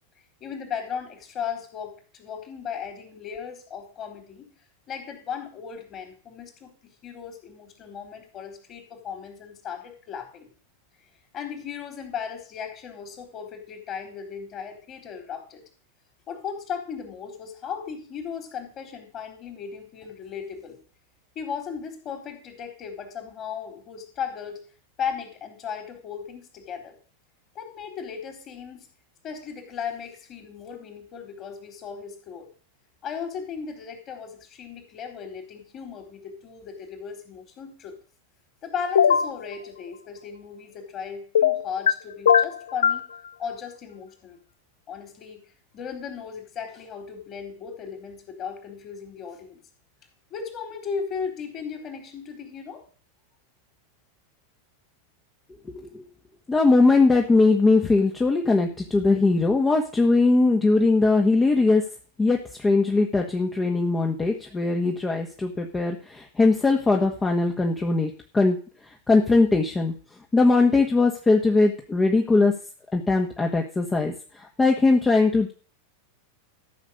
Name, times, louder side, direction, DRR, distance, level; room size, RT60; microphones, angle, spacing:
voice 1, 0.4-4.5 4.9-10.5 11.3-15.6 16.3-20.8 21.3-24.6 25.0-27.0 27.5-28.9 29.2-32.5 33.0-37.9 38.6-43.0 43.4-44.4 44.9-45.4 45.7-49.6 50.3-52.8, left 7 dB, 35° left, 5 dB, 4.4 m, -36 dB
sound 1, 38.9-39.3 41.3-41.9 42.3-43.0, left 8 dB, 70° left, 0.5 m, -19 dB
voice 2, 55.6-56.1 56.5-61.8 62.2-68.6 68.9-69.9 70.3-72.5 72.9-75.5, left 3 dB, 15° left, 2 dB, 1.6 m, -20 dB
13.5 x 6.6 x 6.7 m, 0.41 s
figure-of-eight pair, 90°, 0 cm